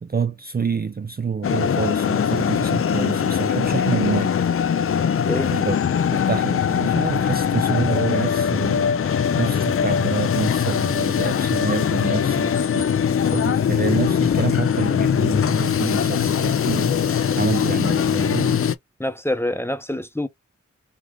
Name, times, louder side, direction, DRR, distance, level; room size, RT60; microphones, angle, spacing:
voice 1, 0.0-4.4 5.5-5.8 6.1-12.8 13.3-18.6, right 5 dB, 35° right, 0.4 m, -27 dB
sound 1, 1.4-18.8, left 8 dB, 50° left, 0.4 m, -21 dB
voice 2, 19.0-20.3, left 1 dB, 10° left, 0.8 m, -26 dB
5.1 x 2.4 x 3.8 m
wide cardioid pair, 55°, 30 cm